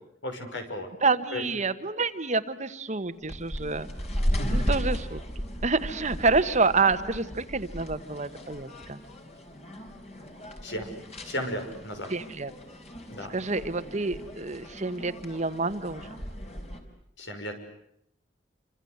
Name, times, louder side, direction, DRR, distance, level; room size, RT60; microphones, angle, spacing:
voice 1, 0.2-0.9 1.3-1.4 4.4-4.5 10.6-10.9 11.2-12.1 13.1-13.3 17.2-17.6, left 1 dB, 75° left, 6 dB, 6.0 m, -34 dB
voice 2, 1.0-3.9 4.5-5.2 5.6-9.0 12.1-12.5 13.3-16.2, right 3 dB, 40° right, 11 dB, 1.3 m, -28 dB
sound 1, 3.2-16.8, equal, 35° left, 4.5 m, -35 dB
28.5 x 25.5 x 8.1 m, 0.74 s
head